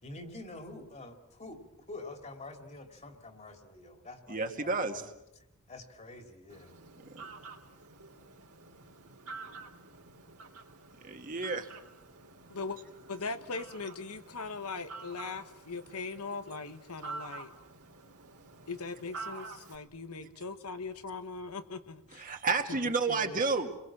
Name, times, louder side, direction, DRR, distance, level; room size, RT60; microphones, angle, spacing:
voice 1, 0.0-5.1 5.7-6.7, left 2 dB, 30° left, 6 dB, 2.7 m, -47 dB
voice 2, 4.3-5.0 7.1-7.2 11.0-11.7 22.1-23.8, right 4 dB, 40° right, 4 dB, 2.1 m, -31 dB
Fowl, 6.5-19.8, right 4 dB, 80° right, 3.4 m, -48 dB
voice 3, 13.1-17.5 18.7-22.3 23.1-23.4, left 4 dB, 90° left, 9 dB, 1.5 m, -40 dB
29.5 x 22.0 x 7.5 m, 0.89 s
head